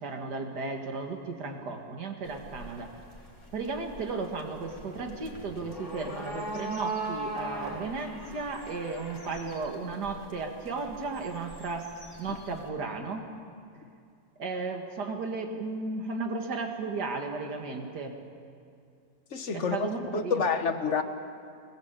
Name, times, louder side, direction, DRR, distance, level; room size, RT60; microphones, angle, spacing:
voice 1, 0.0-2.9 3.5-11.9 12.2-13.2 14.4-18.1 19.5-20.4, right 4 dB, 70° right, 3 dB, 2.6 m, -34 dB
sound 1, 2.3-12.7, right 2 dB, 20° left, 3.6 m, -40 dB
voice 2, 19.3-21.0, left 5 dB, 45° left, 8 dB, 1.4 m, -29 dB
23.0 x 19.5 x 8.3 m, 2.4 s
omnidirectional pair, 1.8 m